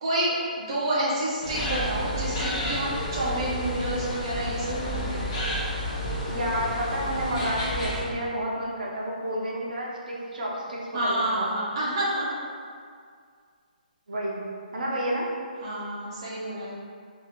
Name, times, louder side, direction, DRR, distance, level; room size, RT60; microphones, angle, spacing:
voice 1, 0.0-5.3 10.9-12.3 15.6-16.7, right 1 dB, 30° right, -8 dB, 0.7 m, -29 dB
sound 1, 1.4-8.0, equal, 30° left, 0.7 m, -30 dB
voice 2, 6.3-11.5 14.1-14.4 14.7-15.3, equal, 65° right, -3 dB, 0.7 m, -30 dB
2.7 x 2.7 x 4.2 m, 2.1 s
hypercardioid pair, 175°, 5 cm